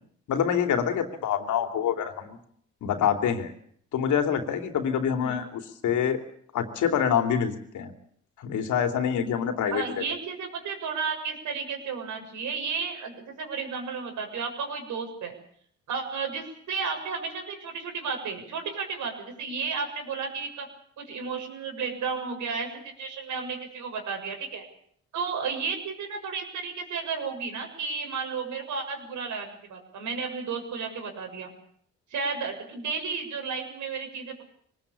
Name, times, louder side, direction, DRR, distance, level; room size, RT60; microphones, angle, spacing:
voice 1, 0.3-2.4 2.8-3.5 3.9-6.2 6.5-7.9 8.4-9.8, left 8 dB, 75° left, 6 dB, 3.1 m, -26 dB
voice 2, 9.7-15.3 15.9-20.7 21.0-22.7 23.0-24.6 25.1-31.5 32.1-34.4, right 5 dB, 75° right, 4 dB, 7.1 m, -33 dB
23.0 x 19.5 x 8.6 m, 0.65 s
cardioid pair, 90°, 30 cm